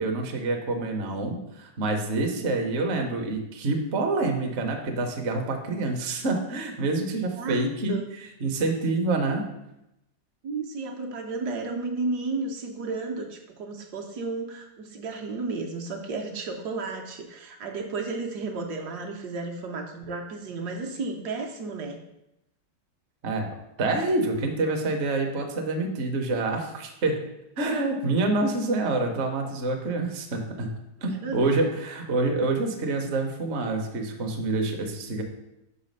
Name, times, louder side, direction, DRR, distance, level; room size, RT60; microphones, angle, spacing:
voice 1, 0.0-8.0 8.4-9.4 23.2-23.5 23.8-27.2 27.6-30.7 31.0-35.2, right 2 dB, 50° right, 3 dB, 0.9 m, -27 dB
voice 2, 7.4-8.1 10.4-22.0 31.1-31.6, right 3 dB, 70° right, 1 dB, 1.3 m, -33 dB
5.6 x 4.1 x 5.3 m, 0.87 s
omnidirectional pair, 1.9 m